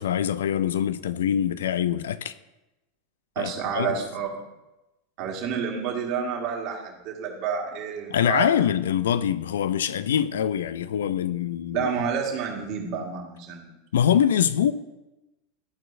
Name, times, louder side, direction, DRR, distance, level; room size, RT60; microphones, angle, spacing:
voice 1, 0.0-2.3 3.4-3.9 8.1-11.9 13.9-14.7, left 9 dB, 70° left, 0.3 m, -24 dB
voice 2, 3.3-4.3 5.2-8.6 11.7-13.7, right 6 dB, 50° right, 1.7 m, -29 dB
13.5 x 4.4 x 2.6 m
figure-of-eight pair, 85°, 0 cm